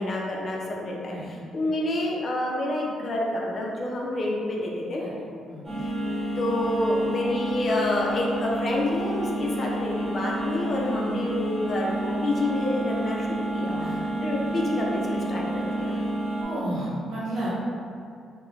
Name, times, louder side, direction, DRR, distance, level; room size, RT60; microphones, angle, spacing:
voice 1, 0.0-5.0 6.4-14.0 14.2-16.0, left 1 dB, 45° left, -2 dB, 0.5 m, -28 dB
sound 1, 5.6-16.4, right 1 dB, 15° right, 1.0 m, -29 dB
voice 2, 13.6-13.9 16.4-17.5, right 1 dB, 75° right, -8 dB, 0.9 m, -32 dB
2.4 x 2.2 x 3.1 m, 2.4 s
cardioid pair, 90°, 0 cm